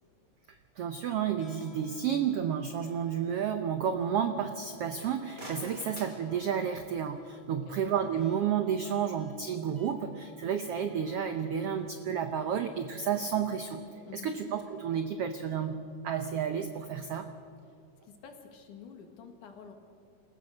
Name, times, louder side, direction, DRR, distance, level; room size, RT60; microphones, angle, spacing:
voice 1, 0.8-13.8 14.1-17.3, right 8 dB, 85° right, 8 dB, 1.3 m, -31 dB
sound 1, 1.3-15.7, equal, 20° left, 3.2 m, -56 dB
sound 2, 5.1-7.1, right 1 dB, 25° right, 4.2 m, -48 dB
voice 2, 18.0-19.7, left 6 dB, 65° left, 4 dB, 3.3 m, -49 dB
28.0 x 15.0 x 6.5 m, 2.4 s
omnidirectional pair, 3.8 m